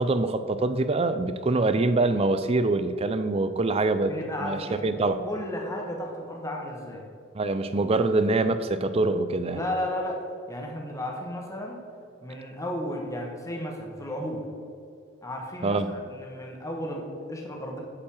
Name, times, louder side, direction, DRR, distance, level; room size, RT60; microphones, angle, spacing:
voice 1, 0.0-4.1 4.4-5.2 7.4-9.6 15.6-15.9, right 2 dB, 25° right, 11 dB, 0.4 m, -24 dB
voice 2, 4.1-7.0 9.5-11.8 12.2-14.5 15.2-17.8, left 1 dB, 15° left, 0 dB, 1.1 m, -34 dB
8.5 x 5.3 x 7.2 m, 2.4 s
head